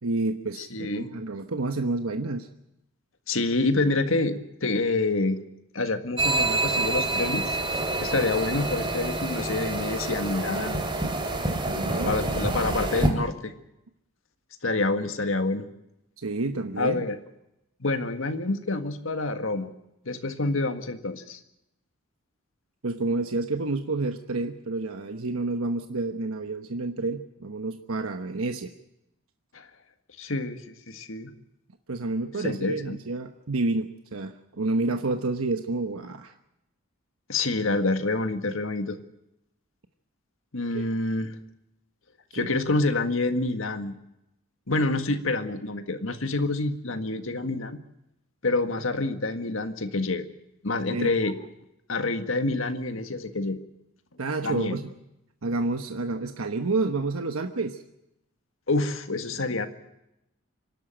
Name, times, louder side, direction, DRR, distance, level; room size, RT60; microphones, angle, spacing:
voice 1, 0.0-2.5 11.7-12.2 16.2-17.1 22.8-28.7 31.9-36.3 40.7-40.8 42.3-42.5 50.9-51.1 54.2-54.9 55.4-57.8, right 3 dB, 85° right, 7 dB, 1.1 m, -29 dB
voice 2, 0.6-1.1 3.3-5.4 5.7-10.8 12.0-13.5 14.6-15.7 16.8-17.2 17.8-19.7 20.0-21.4 29.5-29.7 30.2-31.3 32.4-33.0 37.3-39.0 40.5-41.4 42.3-43.9 44.7-47.8 48.4-50.2 50.6-51.3 51.9-53.6 54.4-54.8 58.7-59.7, left 2 dB, 70° left, 8 dB, 1.7 m, -27 dB
sound 1, 6.2-13.1, right 2 dB, 25° right, 2.6 m, -27 dB
26.0 x 12.0 x 8.9 m, 0.86 s
head